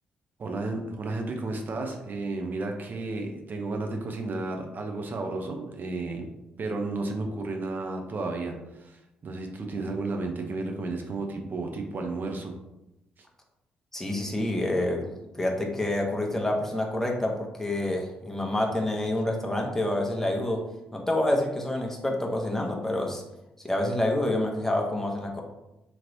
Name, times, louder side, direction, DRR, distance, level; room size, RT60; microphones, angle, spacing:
voice 1, 0.4-6.3 6.6-12.5, right 3 dB, 45° right, 3 dB, 0.6 m, -32 dB
voice 2, 13.9-15.1 15.4-20.6 20.9-23.2 23.6-25.4, left 1 dB, 10° left, 0 dB, 0.7 m, -27 dB
3.0 x 2.9 x 2.6 m, 0.94 s
hypercardioid pair, 45°, 4 cm